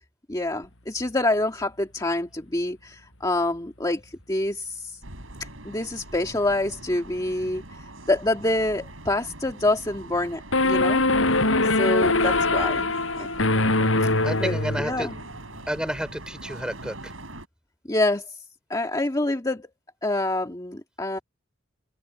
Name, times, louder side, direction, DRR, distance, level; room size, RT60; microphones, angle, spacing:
voice 1, 0.3-5.0 5.4-7.6 8.1-11.0 11.7-12.9 13.2-13.3 14.3-15.1 17.9-18.4 18.7-19.7 20.0-21.2, left 2 dB, 20° left, 1.8 m, -26 dB
sound 1, 5.0-17.5, right 2 dB, 90° right, 7.7 m, -42 dB
sound 2, 10.5-15.2, left 2 dB, 90° left, 6.5 m, -22 dB
voice 2, 14.2-15.1 15.7-17.1, equal, 5° right, 5.7 m, -30 dB
open air
head